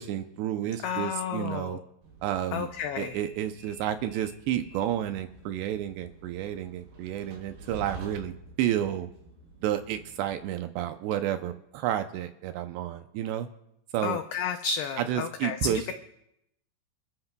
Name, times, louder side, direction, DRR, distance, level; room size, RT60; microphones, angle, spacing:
voice 1, 0.0-1.8 2.2-2.7 3.0-8.3 8.6-9.1 9.6-13.5 13.9-14.2 15.0-15.9, right 11 dB, 80° right, 8 dB, 2.6 m, -31 dB
voice 2, 0.8-1.8 2.5-3.2 14.0-15.9, left 7 dB, 90° left, 7 dB, 2.2 m, -32 dB
Train, 2.0-10.4, right 2 dB, 65° right, 5.2 m, -49 dB
27.0 x 13.5 x 2.3 m, 0.80 s
omnidirectional pair, 5.3 m